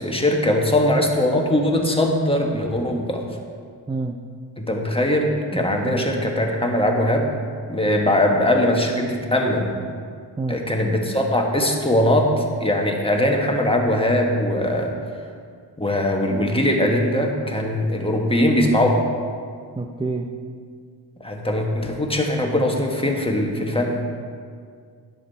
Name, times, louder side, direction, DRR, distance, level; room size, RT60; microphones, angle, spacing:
voice 1, 0.0-3.2 4.6-7.3 7.7-9.7 10.5-14.9 15.8-19.0 21.2-24.1, left 1 dB, 10° left, 1 dB, 1.6 m, -21 dB
voice 2, 5.5-6.1 10.4-10.6 19.7-20.3, right 3 dB, 10° right, 3 dB, 0.6 m, -28 dB
10.0 x 7.5 x 4.2 m, 2.1 s
cardioid pair, 50°, 46 cm